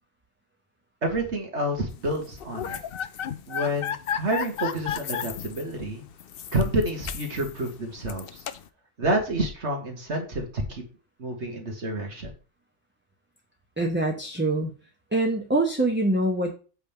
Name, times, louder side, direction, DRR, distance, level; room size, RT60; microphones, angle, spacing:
voice 1, 1.0-2.8 3.5-6.0 6.5-8.4 9.0-10.8 11.2-12.3, right 1 dB, 65° right, 2 dB, 2.1 m, -28 dB
sound 1, 2.2-8.7, left 9 dB, 55° left, 0.7 m, -34 dB
voice 2, 13.8-14.7 15.1-16.5, right 2 dB, 10° right, 2 dB, 0.9 m, -24 dB
8.1 x 3.5 x 5.8 m, 0.35 s
omnidirectional pair, 1.3 m